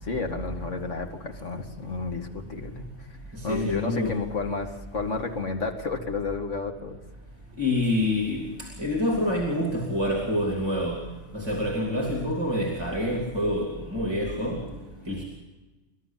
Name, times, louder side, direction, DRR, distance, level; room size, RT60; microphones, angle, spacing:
voice 1, 0.0-2.8 3.4-7.0, left 4 dB, 80° left, 5 dB, 2.4 m, -31 dB
voice 2, 3.3-4.2 7.6-11.0 11.3-14.7 15.1-15.2, left 1 dB, 20° right, 1 dB, 3.1 m, -27 dB
28.5 x 12.5 x 7.5 m, 1.2 s
omnidirectional pair, 1.3 m